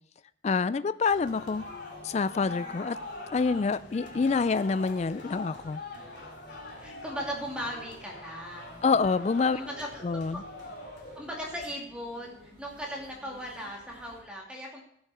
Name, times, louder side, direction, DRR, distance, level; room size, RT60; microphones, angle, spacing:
voice 1, 0.4-1.6 2.0-3.0 3.3-5.8 8.8-9.6 10.0-10.4, left 4 dB, 35° left, 15 dB, 0.3 m, -27 dB
sound 1, 1.1-11.5, left 3 dB, 65° left, 2.5 m, -44 dB
sound 2, 1.1-14.2, equal, 65° right, 5.0 m, -53 dB
voice 2, 6.8-8.9 9.5-10.8 11.2-14.8, equal, 5° right, -2 dB, 2.4 m, -38 dB
15.5 x 7.1 x 4.2 m, 0.73 s
head